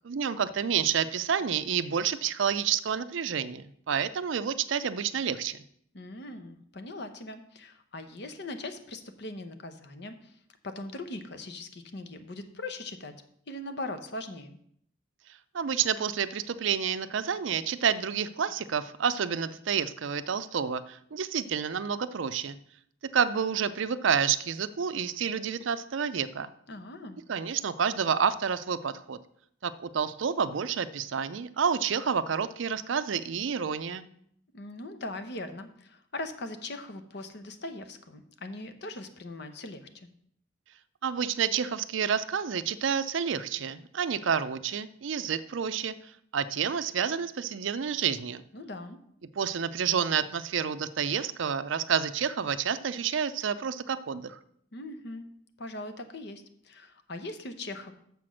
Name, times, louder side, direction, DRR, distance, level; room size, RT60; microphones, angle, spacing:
voice 1, 0.1-5.6 15.5-22.6 23.1-26.5 27.3-29.2 29.6-34.1 41.0-45.9 46.3-48.4 49.4-54.4, right 7 dB, 70° right, 14 dB, 0.5 m, -29 dB
voice 2, 5.9-10.4 10.6-13.2 13.5-14.6 26.7-27.2 34.5-40.1 48.5-49.0 54.7-55.3 55.6-57.9, left 2 dB, 55° left, 8 dB, 0.8 m, -40 dB
7.0 x 5.9 x 6.2 m, 0.68 s
head